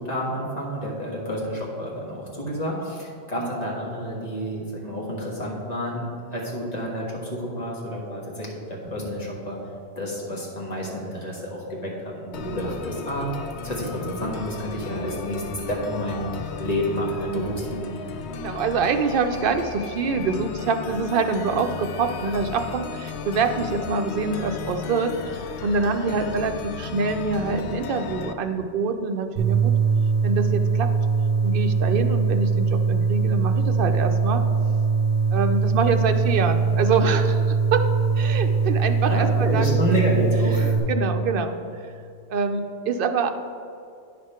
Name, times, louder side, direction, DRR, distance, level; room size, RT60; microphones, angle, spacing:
voice 1, 0.0-6.0 6.3-9.6 9.9-13.3 13.6-16.2 16.6-18.0 39.1-40.7, equal, 40° left, -4 dB, 1.7 m, -29 dB
sound 1, 12.3-28.3, left 6 dB, 90° left, 0.9 m, -35 dB
voice 2, 18.4-29.7 30.2-30.9 31.4-34.4 35.3-37.8 38.2-40.1 40.5-41.6 42.3-43.3, right 4 dB, 60° right, 7 dB, 0.7 m, -25 dB
sound 2, 29.4-40.8, right 5 dB, 10° right, 1.9 m, -22 dB
10.0 x 5.2 x 4.3 m, 2.5 s
omnidirectional pair, 1.1 m